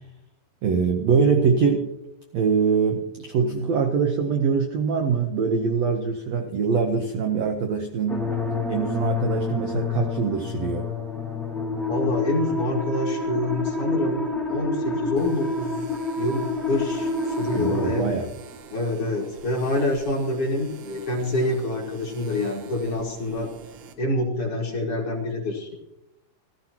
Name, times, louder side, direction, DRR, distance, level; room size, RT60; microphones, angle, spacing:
voice 1, 0.6-1.9 2.3-8.3 8.7-10.9 17.5-18.3, right 5 dB, 90° right, 4 dB, 1.4 m, -23 dB
sound 1, 8.1-18.0, left 3 dB, ahead, 0.8 m, -28 dB
voice 2, 11.9-14.2 14.5-15.8 16.2-18.1 18.7-23.5 24.0-25.7, left 1 dB, 45° left, -1 dB, 2.1 m, -26 dB
sound 2, 15.2-23.9, right 5 dB, 70° right, 1.7 m, -45 dB
15.0 x 14.5 x 2.9 m, 0.88 s
omnidirectional pair, 4.4 m